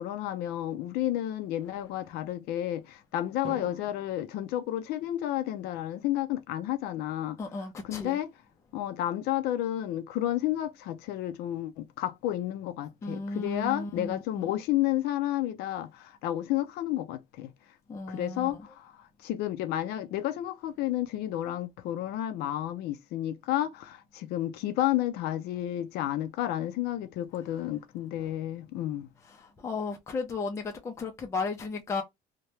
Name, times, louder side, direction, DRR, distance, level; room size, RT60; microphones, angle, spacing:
voice 1, 0.0-7.4 7.9-8.3 8.7-17.5 18.1-18.9 19.2-29.1, left 13 dB, 75° left, 0.5 m, -31 dB
Drum, 3.4-5.5, right 3 dB, 35° right, 0.8 m, -48 dB
voice 2, 7.4-8.2 13.0-14.5 17.9-18.6 28.2-28.3 29.2-32.0, left 4 dB, 15° left, 0.5 m, -35 dB
2.7 x 2.1 x 3.1 m
cardioid pair, 160°, 17 cm